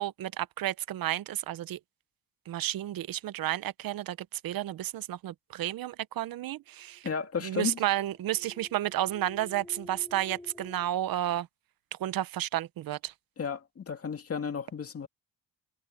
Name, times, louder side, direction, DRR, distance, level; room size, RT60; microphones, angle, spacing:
voice 1, 0.0-1.8 2.5-7.1 7.4-11.5 12.0-13.1, right 13 dB, 75° right, 0.9 m, -32 dB
voice 2, 7.0-7.8 13.4-15.1, left 6 dB, 40° left, 2.3 m, -33 dB
sound 1, 7.0-10.9, left 1 dB, 10° left, 4.1 m, -51 dB
cardioid pair, 105°, 35 cm